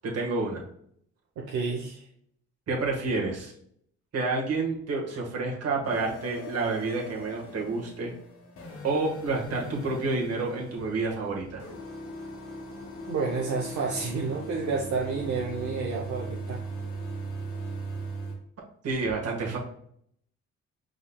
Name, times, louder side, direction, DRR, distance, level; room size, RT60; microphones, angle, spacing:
voice 1, 0.0-0.6 2.7-3.5 4.1-8.1 8.8-11.6 18.8-19.6, right 3 dB, 55° right, -1 dB, 1.6 m, -29 dB
voice 2, 1.4-2.1 13.1-16.6, right 4 dB, 70° right, -1 dB, 0.9 m, -30 dB
sound 1, 5.8-18.3, right 1 dB, 50° left, 1.3 m, -39 dB
5.0 x 3.9 x 2.3 m, 0.68 s
cardioid pair, 90°, 30 cm